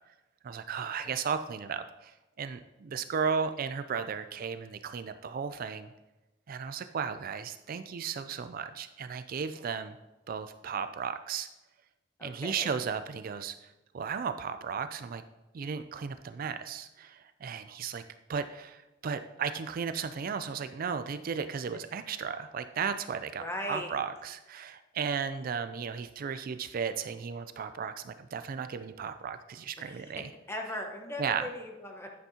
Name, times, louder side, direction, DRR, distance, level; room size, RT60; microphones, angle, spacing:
voice 1, 0.4-5.9 6.5-10.0 10.3-11.5 12.2-15.2 15.5-18.0 18.3-30.3 31.2-31.4, right 6 dB, 50° right, 10 dB, 0.4 m, -35 dB
voice 2, 12.2-12.7 23.4-23.9 29.8-32.1, left 1 dB, 15° left, 1 dB, 1.2 m, -39 dB
9.7 x 9.1 x 2.8 m, 1.0 s
head